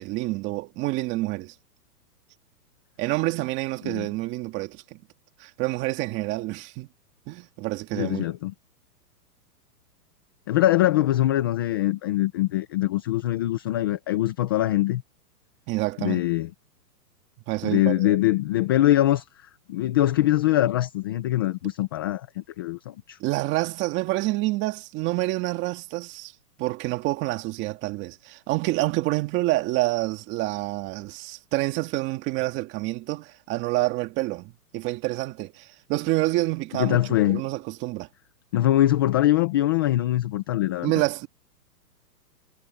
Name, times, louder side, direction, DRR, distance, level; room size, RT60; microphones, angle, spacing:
voice 1, 0.0-1.5 3.0-5.0 5.4-6.9 7.3-8.3 15.7-16.2 17.5-18.2 23.2-26.3 26.6-37.0 37.3-38.1 40.8-41.3, right 19 dB, 25° right, 1.8 m, -28 dB
voice 2, 7.9-8.5 10.5-15.0 16.0-16.5 17.6-19.2 19.7-23.2 36.8-37.4 38.5-40.9, left 14 dB, 15° left, 0.5 m, -23 dB
hypercardioid pair, 155°, 47 cm